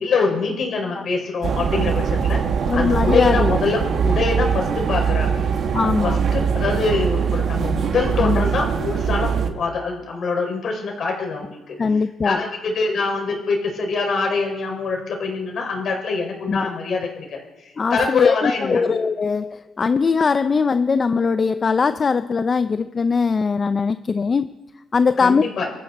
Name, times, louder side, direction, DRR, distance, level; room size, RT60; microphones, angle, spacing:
voice 1, 0.0-2.4 2.7-5.4 6.0-11.8 12.2-18.8 25.2-25.7, left 4 dB, 55° left, 1 dB, 5.2 m, -24 dB
sound 1, 1.4-9.5, right 6 dB, 55° right, 1.6 m, -22 dB
voice 2, 2.7-3.5 5.7-6.2 8.2-8.4 11.8-12.4 16.5-16.7 17.8-24.5 24.9-25.4, left 5 dB, 35° left, 12 dB, 0.5 m, -20 dB
25.0 x 13.0 x 4.2 m, 1.0 s
cardioid pair, 105°, 0 cm